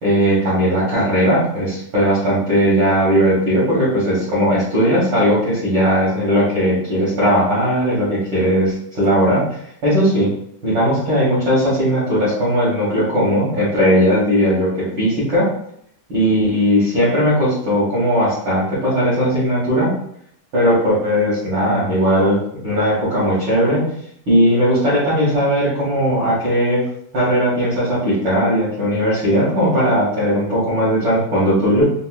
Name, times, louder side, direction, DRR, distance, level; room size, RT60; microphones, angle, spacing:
voice 1, 0.0-9.4 9.8-10.3 10.6-15.5 16.1-19.9 20.5-23.8 24.3-26.8 27.1-31.8, equal, 65° right, -9 dB, 1.1 m, -17 dB
5.3 x 2.1 x 2.4 m, 0.70 s
omnidirectional pair, 4.0 m